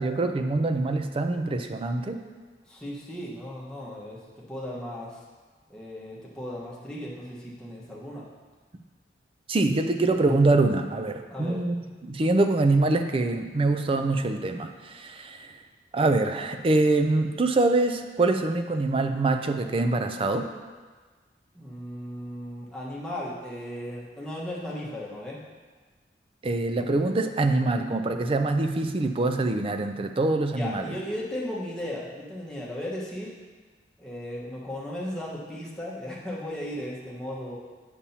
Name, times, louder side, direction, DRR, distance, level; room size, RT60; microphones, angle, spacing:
voice 1, 0.0-2.2 9.5-11.8 12.0-15.5 15.9-20.5 26.4-31.0, right 2 dB, 30° right, 6 dB, 0.4 m, -24 dB
voice 2, 2.7-5.2 5.7-8.3 11.3-11.6 21.5-25.4 30.5-33.3 34.0-37.6, left 1 dB, 5° left, -7 dB, 1.3 m, -36 dB
8.5 x 6.9 x 2.8 m, 1.4 s
head